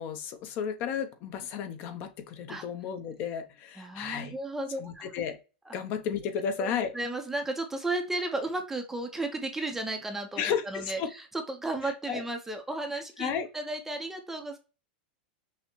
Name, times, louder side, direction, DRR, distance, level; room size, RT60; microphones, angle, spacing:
voice 1, 0.0-4.4 4.8-5.4 5.7-6.9 10.4-11.1 11.8-12.2 13.2-13.5, left 7 dB, 40° left, 8 dB, 0.6 m, -33 dB
voice 2, 3.8-5.1 6.6-14.6, right 2 dB, 5° right, 5 dB, 0.5 m, -34 dB
5.7 x 2.0 x 2.9 m, 0.32 s
supercardioid pair, 150°, 5 cm